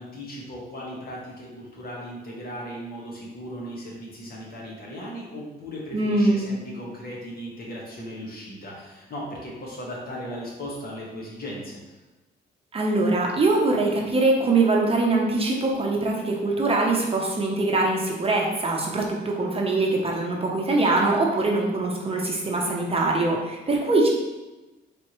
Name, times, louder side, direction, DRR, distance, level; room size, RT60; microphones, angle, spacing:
voice 1, 0.0-11.8, equal, 50° left, -3 dB, 1.4 m, -37 dB
voice 2, 5.9-6.4 12.7-24.1, right 2 dB, 30° right, -1 dB, 0.8 m, -23 dB
4.5 x 3.4 x 3.0 m, 1.1 s
cardioid pair, 90°, 20 cm